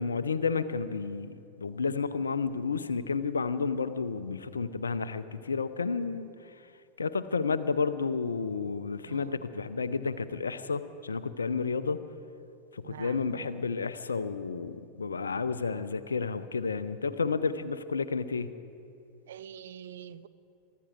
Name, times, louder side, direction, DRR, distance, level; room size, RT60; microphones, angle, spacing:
voice 1, 0.0-6.3 7.0-12.0 12.7-18.5, left 5 dB, 75° left, 13 dB, 0.6 m, -31 dB
voice 2, 9.1-9.4 12.8-13.6 19.3-20.3, right 10 dB, 60° right, 13 dB, 0.6 m, -45 dB
23.0 x 13.5 x 4.7 m, 2.6 s
figure-of-eight pair, 90°, 0 cm